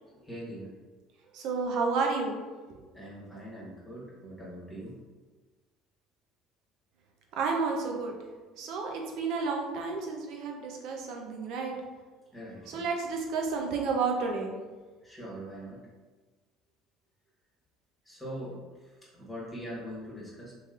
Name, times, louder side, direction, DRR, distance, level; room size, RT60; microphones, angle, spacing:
voice 1, 0.1-0.7 2.9-5.0 12.3-12.8 15.0-15.8 18.1-18.6 19.1-20.5, equal, 10° left, -7 dB, 1.3 m, -42 dB
voice 2, 1.3-2.4 2.7-2.8 7.4-8.2 8.6-11.8 12.7-14.5, right 4 dB, 65° right, 1 dB, 0.6 m, -31 dB
3.0 x 3.0 x 2.4 m, 1.3 s
hypercardioid pair, 70°, 0 cm